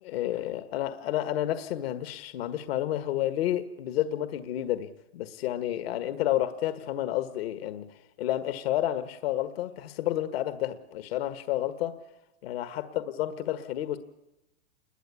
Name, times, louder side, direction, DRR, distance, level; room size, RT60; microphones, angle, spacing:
voice 1, 0.0-12.0 12.4-14.0, left 13 dB, 60° left, 10 dB, 1.6 m, -30 dB
29.0 x 21.5 x 8.5 m, 0.94 s
supercardioid pair, 155°, 34 cm